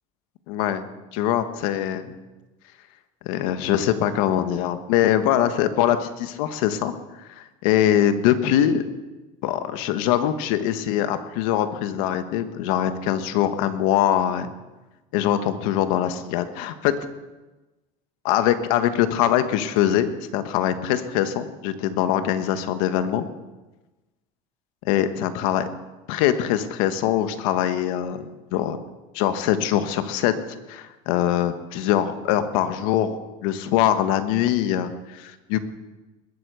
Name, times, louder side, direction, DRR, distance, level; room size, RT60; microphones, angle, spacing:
voice 1, 0.5-0.8 1.1-2.1 3.2-6.9 7.4-8.8 9.4-14.5 15.1-16.9 18.2-23.2 24.8-25.7 26.1-28.8 29.1-30.3 30.7-33.2 33.4-35.6, left 11 dB, 85° left, 10 dB, 1.4 m, -23 dB
20.5 x 8.3 x 6.9 m, 1.1 s
cardioid pair, 125°, 17 cm